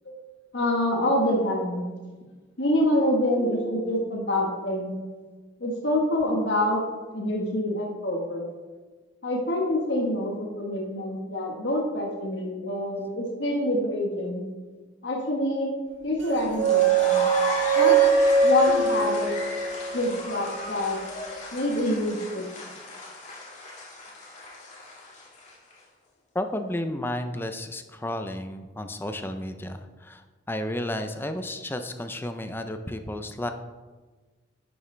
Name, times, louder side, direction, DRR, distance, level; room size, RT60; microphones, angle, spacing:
voice 1, 0.5-1.8 2.6-4.9 5.6-6.8 7.1-8.4 9.2-14.4 15.0-15.7 16.0-17.2 17.7-18.0 18.4-19.3 19.9-21.0 21.5-22.5, left 1 dB, 65° left, -1 dB, 1.4 m, -26 dB
sound 1, 16.3-20.4, right 5 dB, 65° right, 0.6 m, -22 dB
sound 2, 16.4-25.7, left 2 dB, 40° left, 2.0 m, -35 dB
sound 3, 18.7-20.4, right 3 dB, 40° right, 0.9 m, -37 dB
voice 2, 26.3-33.5, left 1 dB, 10° left, 7 dB, 0.5 m, -32 dB
10.5 x 7.1 x 3.3 m, 1.3 s
head